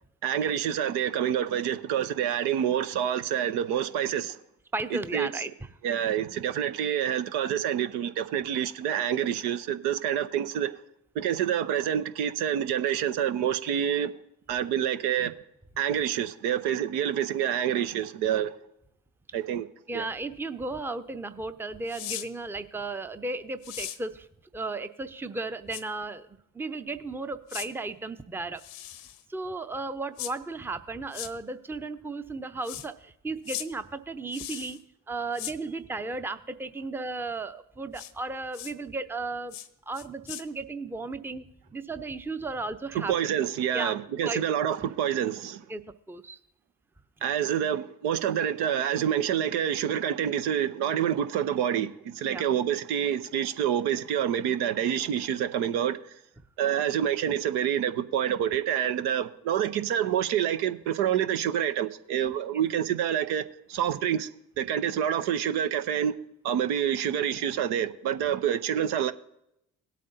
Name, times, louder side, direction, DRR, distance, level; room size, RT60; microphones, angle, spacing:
voice 1, 0.2-4.4 4.9-5.3 5.8-10.7 11.1-14.1 14.5-15.3 15.8-18.5 19.3-19.7 19.9-20.0 42.9-45.6 47.2-56.0 56.6-64.3 64.6-66.1 66.4-69.1, right 9 dB, 70° right, 0.7 m, -27 dB
voice 2, 4.7-5.5 5.9-6.0 19.9-24.3 24.5-28.6 29.3-39.6 39.9-41.5 41.7-43.1 43.7-43.9 44.2-44.4 45.7-46.4 52.3-52.4, right 3 dB, 5° right, 0.6 m, -35 dB
sound 1, 21.9-22.3 23.6-24.0 25.7-25.8 27.5-27.7 28.6-29.2 30.2-30.3 31.1-31.3 32.6-32.9 33.4-33.7 34.3-34.8 35.3-35.5 37.9-38.1 38.5-38.7 39.5-39.7 39.9-40.4, left 12 dB, 70° left, 0.8 m, -38 dB
17.5 x 8.4 x 2.7 m
hypercardioid pair, 50°, 41 cm